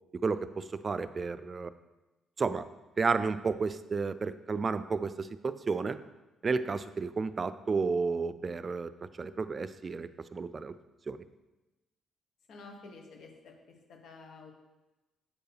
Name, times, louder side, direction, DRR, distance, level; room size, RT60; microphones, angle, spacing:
voice 1, 0.2-1.7 2.4-2.7 3.0-6.0 6.4-8.9 9.2-10.7 11.1-11.2, right 4 dB, 35° right, 13 dB, 0.3 m, -32 dB
voice 2, 12.5-14.5, left 3 dB, 70° left, 2 dB, 1.1 m, -50 dB
7.3 x 4.5 x 3.4 m, 1.1 s
cardioid pair, 90°, 0 cm